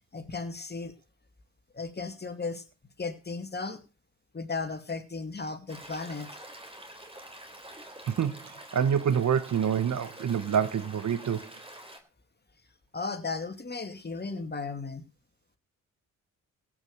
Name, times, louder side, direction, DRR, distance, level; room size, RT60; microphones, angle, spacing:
voice 1, 0.1-0.9 1.7-2.6 3.0-3.8 4.3-6.4 12.9-15.1, left 4 dB, 30° left, 2.5 m, -35 dB
Stream, 5.7-12.0, right 1 dB, 15° right, 3.9 m, -47 dB
voice 2, 8.1-11.5, right 8 dB, 55° right, 1.1 m, -27 dB
16.0 x 6.2 x 6.6 m
supercardioid pair, 55°, 35 cm